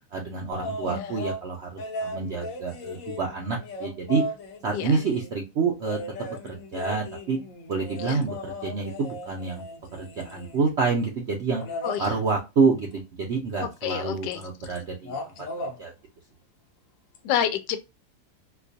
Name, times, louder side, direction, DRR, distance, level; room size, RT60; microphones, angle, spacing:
voice 1, 0.1-4.2 4.6-7.4 7.7-9.6 9.9-11.6 12.0-15.1 15.8-15.9, right 4 dB, 60° right, 0.7 m, -28 dB
sound 1, 0.5-1.4 1.8-5.3 5.8-10.7 11.6-12.1 13.9-14.0 14.3-14.8 15.0-15.8 17.1-17.2, left 1 dB, 60° left, 1.0 m, -36 dB
voice 2, 11.8-12.2 13.6-14.4 17.2-17.8, left 10 dB, 85° left, 1.2 m, -29 dB
4.3 x 2.3 x 2.5 m
omnidirectional pair, 1.8 m